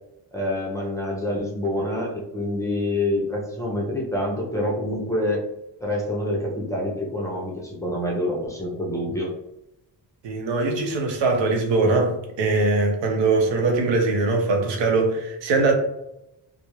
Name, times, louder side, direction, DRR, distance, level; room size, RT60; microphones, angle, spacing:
voice 1, 0.3-5.4 5.8-9.3, left 1 dB, 10° left, 0.5 m, -26 dB
voice 2, 10.2-15.8, right 3 dB, 90° right, 0.7 m, -21 dB
2.4 x 2.0 x 3.0 m
wide cardioid pair, 140°, 42 cm